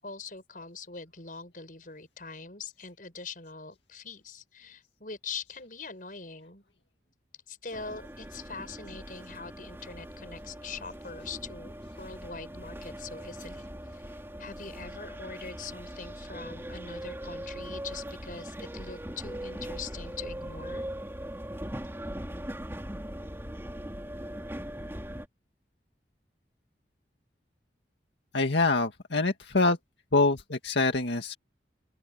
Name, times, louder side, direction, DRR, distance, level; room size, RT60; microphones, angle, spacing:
voice 1, 0.0-6.6 7.5-14.1 14.4-20.9, left 4 dB, 50° left, 7.3 m, -43 dB
sound 1, 7.7-25.3, equal, 15° right, 3.2 m, -40 dB
voice 2, 28.3-29.8 30.1-31.3, left 3 dB, 90° left, 2.0 m, -25 dB
open air
head